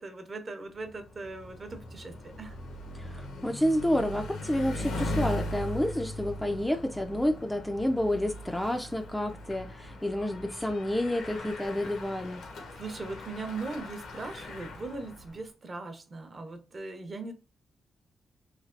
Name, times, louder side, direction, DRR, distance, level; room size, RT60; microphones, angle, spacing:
voice 1, 0.0-2.6 12.7-17.3, right 3 dB, 40° right, 0.7 m, -39 dB
Bicycle, 0.8-15.4, left 1 dB, 90° left, 0.8 m, -39 dB
voice 2, 2.9-12.4, left 1 dB, 5° left, 0.3 m, -29 dB
3.2 x 2.7 x 2.4 m
cardioid pair, 115°, 0 cm